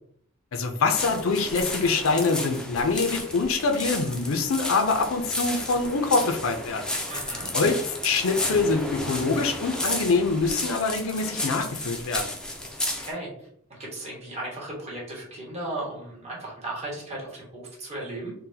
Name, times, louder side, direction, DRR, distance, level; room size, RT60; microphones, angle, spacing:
voice 1, 0.5-6.8 7.5-12.3, left 4 dB, 75° left, 5 dB, 0.5 m, -24 dB
sound 1, 0.9-13.1, left 1 dB, 5° left, 0.4 m, -33 dB
voice 2, 7.1-7.5 12.8-18.3, right 1 dB, 30° right, -5 dB, 1.2 m, -36 dB
3.8 x 2.2 x 2.7 m, 0.67 s
head